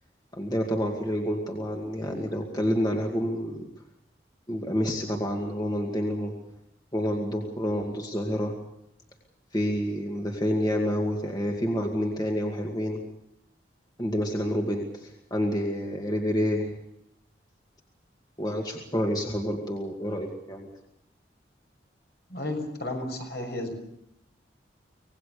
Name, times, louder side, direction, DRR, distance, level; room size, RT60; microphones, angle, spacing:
voice 1, 0.3-3.6 4.5-6.3 6.9-8.5 9.5-13.0 14.0-16.7 18.4-20.7, equal, 20° left, 1 dB, 2.3 m, -28 dB
voice 2, 22.3-23.7, left 1 dB, 60° left, 4 dB, 6.4 m, -33 dB
25.5 x 19.0 x 6.8 m, 0.77 s
head